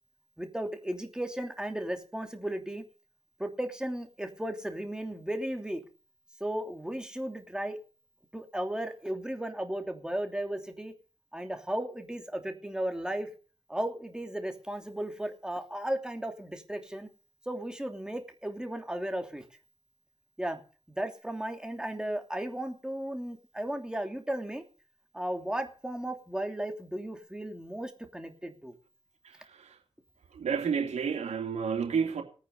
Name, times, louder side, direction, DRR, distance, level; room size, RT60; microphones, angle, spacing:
voice 1, 0.4-2.8 3.4-5.8 6.4-7.8 8.3-10.9 11.3-13.3 13.7-17.1 17.5-19.4 20.4-20.6 20.9-24.6 25.1-28.7, right 1 dB, 5° right, 2.9 m, -35 dB
voice 2, 30.3-32.2, right 6 dB, 90° right, 2.8 m, -30 dB
19.0 x 9.2 x 5.5 m
cardioid pair, 60°, 11 cm